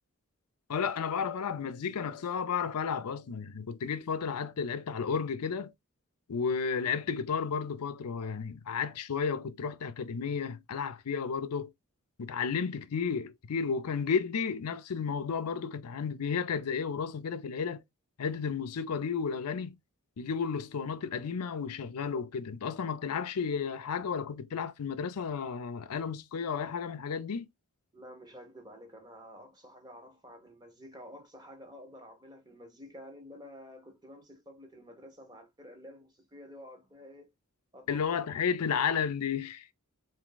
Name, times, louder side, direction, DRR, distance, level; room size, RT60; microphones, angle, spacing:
voice 1, 0.7-5.7 6.3-11.7 12.2-17.8 18.2-19.8 20.2-27.5 37.9-39.7, left 6 dB, 90° left, 0.5 m, -32 dB
voice 2, 27.9-37.3 37.7-38.0, equal, 20° right, 0.9 m, -50 dB
3.6 x 2.6 x 3.8 m
head